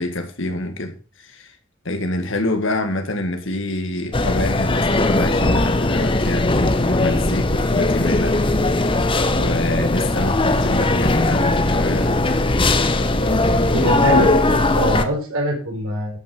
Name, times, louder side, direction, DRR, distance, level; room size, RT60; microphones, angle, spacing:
voice 1, 0.0-1.5 1.8-8.8 9.3-12.2, left 1 dB, 60° left, 1.9 m, -26 dB
sound 1, 4.1-15.0, left 2 dB, 25° left, 0.9 m, -19 dB
voice 2, 13.7-16.2, equal, 90° right, 4.5 m, -24 dB
13.0 x 6.4 x 5.5 m
head